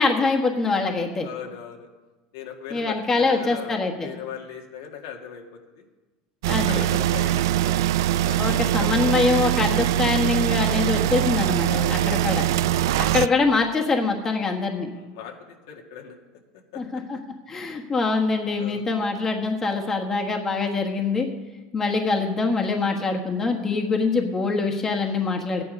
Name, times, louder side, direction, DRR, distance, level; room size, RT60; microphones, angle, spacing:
voice 1, 0.0-1.3 2.7-4.1 6.5-6.8 8.4-12.4 13.0-14.9 16.8-17.2 17.5-21.3 21.7-25.6, left 4 dB, 20° left, 2 dB, 1.4 m, -24 dB
voice 2, 1.2-1.9 2.3-5.4 5.7-5.9 6.7-7.7 8.3-9.3 11.6-12.2 12.7-13.0 14.9-15.3 15.7-16.2 16.7-17.0 17.5-17.6 18.6-19.1, left 8 dB, 90° left, 1 dB, 2.0 m, -38 dB
sound 1, 6.4-13.3, right 12 dB, 90° right, 0.3 m, -22 dB
13.5 x 9.9 x 5.3 m, 1.2 s
supercardioid pair, 140°, 2 cm